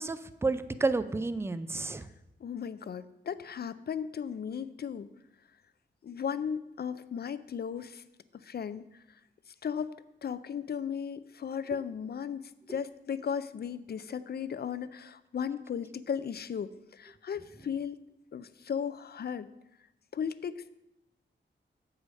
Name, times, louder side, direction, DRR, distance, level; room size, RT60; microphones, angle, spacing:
voice 1, 0.0-2.1, right 3 dB, 15° right, 12 dB, 0.4 m, -31 dB
voice 2, 2.4-5.1 6.0-8.0 8.3-8.8 9.6-9.9 10.2-12.4 12.7-18.0 18.3-19.5 20.1-20.8, left 7 dB, 55° left, 14 dB, 0.4 m, -36 dB
8.2 x 4.8 x 6.2 m, 0.90 s
wide cardioid pair, 120°, 20 cm